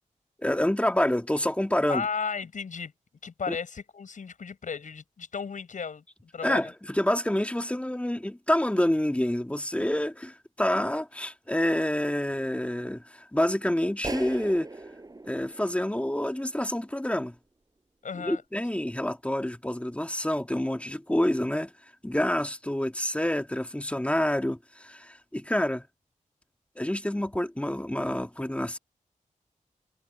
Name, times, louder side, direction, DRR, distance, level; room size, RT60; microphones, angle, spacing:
voice 1, 0.4-2.1 3.5-3.6 6.4-14.7 15.2-17.3 18.2-21.7 22.0-25.8 26.8-28.8, left 1 dB, 10° left, 1.8 m, -27 dB
voice 2, 1.9-2.9 3.2-6.0 6.3-6.7 18.0-18.4, left 5 dB, 70° left, 6.9 m, -34 dB
sound 1, 14.0-16.6, right 2 dB, 25° right, 6.4 m, -39 dB
wide cardioid pair, 80°, 14 cm